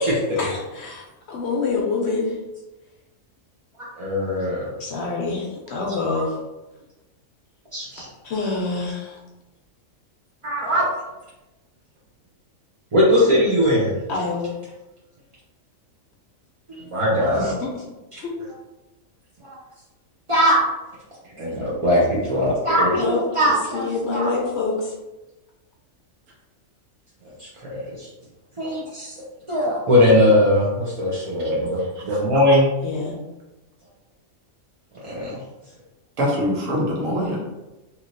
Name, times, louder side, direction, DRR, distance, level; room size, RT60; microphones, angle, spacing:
voice 1, 0.0-2.4 4.8-6.4 8.2-9.2 14.1-14.5 17.3-17.8 18.2-18.3 22.9-24.9 32.8-33.2, left 3 dB, 65° left, -1 dB, 0.7 m, -26 dB
voice 2, 4.0-4.7 7.7-8.1 10.4-10.8 12.9-13.9 16.7-17.5 18.1-18.2 19.4-19.6 20.3-20.6 21.4-23.9 24.1-24.3 27.4-28.1 28.6-29.1 29.5-32.7 35.0-35.4, equal, 45° right, -7 dB, 0.4 m, -20 dB
voice 3, 31.4-32.2 32.5-32.6 36.2-37.4, equal, 70° right, -3 dB, 1.2 m, -25 dB
2.9 x 2.8 x 2.5 m, 1.0 s
omnidirectional pair, 1.4 m